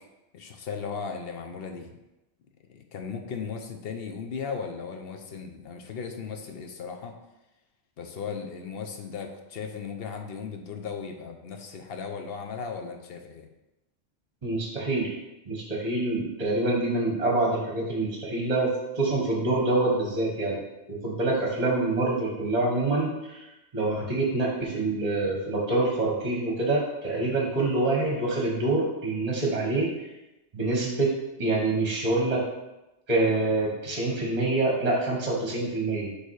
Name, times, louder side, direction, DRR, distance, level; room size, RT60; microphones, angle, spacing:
voice 1, 0.3-2.0 2.7-7.2 8.0-13.5, left 5 dB, 60° left, 5 dB, 0.8 m, -36 dB
voice 2, 14.4-15.1 15.5-20.6 20.9-29.9 30.5-31.1 31.4-32.4 33.1-36.1, right 2 dB, 35° right, -2 dB, 1.2 m, -26 dB
6.8 x 3.3 x 4.7 m, 0.97 s
omnidirectional pair, 1.3 m